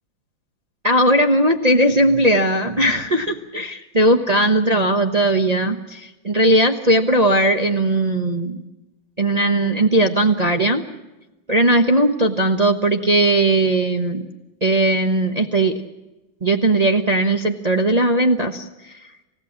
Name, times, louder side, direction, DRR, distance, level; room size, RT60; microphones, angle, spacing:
voice 1, 0.8-8.6 9.2-10.8 11.5-14.3 14.6-15.7 16.4-19.0, right 1 dB, 25° right, 4 dB, 1.0 m, -18 dB
28.5 x 15.5 x 7.4 m, 1.0 s
omnidirectional pair, 2.1 m